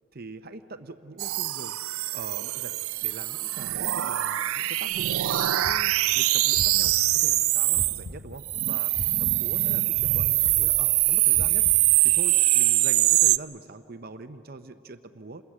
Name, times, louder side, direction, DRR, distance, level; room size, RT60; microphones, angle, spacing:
voice 1, 0.1-1.8 2.1-8.9 9.2-11.7 12.0-15.4, right 3 dB, 45° right, 9 dB, 0.7 m, -42 dB
sound 1, 1.2-8.0 8.4-13.4, right 16 dB, 85° right, 0.4 m, -23 dB
sound 2, 5.6-8.6 8.9-12.3, left 1 dB, 55° left, 1.2 m, -40 dB
28.0 x 21.0 x 7.4 m, 2.8 s
head